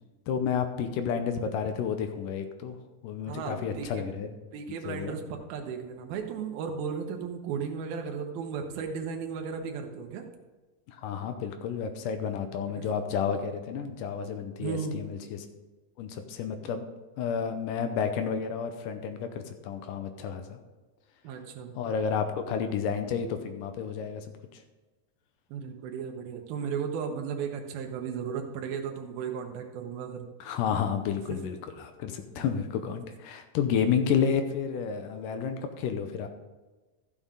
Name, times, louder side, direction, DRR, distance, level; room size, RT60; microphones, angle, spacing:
voice 1, 0.3-2.8 3.0-4.3 4.9-5.2 10.9-15.5 16.0-16.9 17.2-20.6 21.8-24.3 30.4-36.3, left 7 dB, 75° left, 7 dB, 2.2 m, -31 dB
voice 2, 3.3-4.0 4.5-10.3 12.8-12.9 14.6-15.0 21.2-21.7 25.5-30.3 32.3-32.5, right 6 dB, 85° right, 3 dB, 2.9 m, -35 dB
14.0 x 7.3 x 3.7 m, 1.2 s
omnidirectional pair, 4.2 m